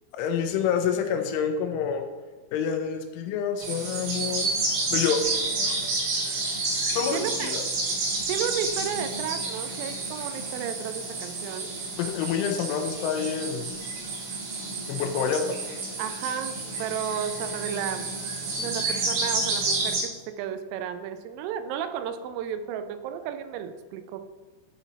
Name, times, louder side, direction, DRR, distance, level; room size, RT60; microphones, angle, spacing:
voice 1, 0.1-2.1 2.5-4.5 4.9-5.2 5.6-5.7 6.9-7.6 12.0-13.8 14.9-15.6, left 7 dB, 80° left, 6 dB, 2.9 m, -27 dB
sound 1, 3.6-20.0, right 3 dB, 70° right, 4.4 m, -30 dB
voice 2, 7.1-7.6 8.3-11.8 16.0-18.1 18.6-24.2, right 8 dB, 85° right, 9 dB, 3.2 m, -33 dB
11.0 x 4.2 x 4.0 m, 1.3 s
omnidirectional pair, 5.8 m